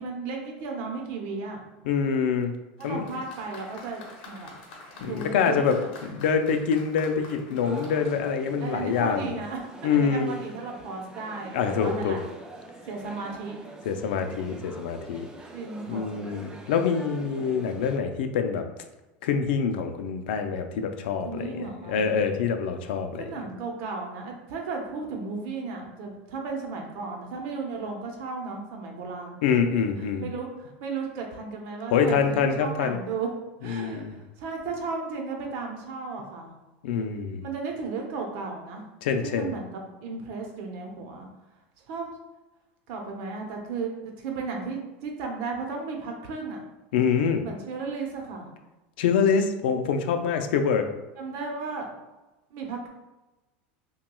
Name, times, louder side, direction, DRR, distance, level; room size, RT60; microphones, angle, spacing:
voice 1, 0.0-1.6 2.8-4.5 4.9-5.7 8.6-9.6 9.9-12.2 12.9-13.6 15.5-16.1 21.0-22.0 23.2-29.4 30.0-33.3 33.6-36.5 37.4-38.9 39.2-41.3 41.9-42.1 42.9-46.6 47.4-48.5 51.2-51.9 52.5-52.9, right 4 dB, 55° right, 1 dB, 0.8 m, -34 dB
voice 2, 1.8-2.5 2.8-3.0 5.0-5.8 6.0-9.3 9.8-10.4 11.5-12.2 13.8-15.3 15.9-18.6 19.2-23.3 29.4-30.3 31.9-33.0 33.6-34.2 36.8-37.4 39.0-39.5 46.9-47.4 49.0-50.9, left 6 dB, 85° left, 6 dB, 0.5 m, -25 dB
Applause, 2.8-9.2, left 3 dB, 65° left, 0.9 m, -47 dB
sound 1, 7.6-18.0, right 2 dB, 10° right, 0.4 m, -45 dB
5.8 x 2.3 x 2.3 m, 1.1 s
supercardioid pair, 160°, 5 cm